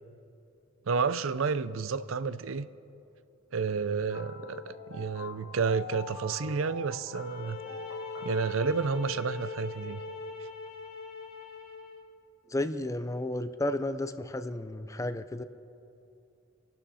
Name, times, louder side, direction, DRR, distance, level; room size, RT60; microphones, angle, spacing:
voice 1, 0.9-2.7 3.5-7.6 8.2-10.0, right 5 dB, 75° right, 14 dB, 0.5 m, -30 dB
sound 1, 4.1-8.7, left 4 dB, 65° left, 1.2 m, -45 dB
sound 2, 7.1-12.1, left 5 dB, 50° left, 2.9 m, -41 dB
voice 2, 12.5-15.4, left 1 dB, 15° left, 11 dB, 0.5 m, -32 dB
29.0 x 12.0 x 4.2 m, 2.8 s
head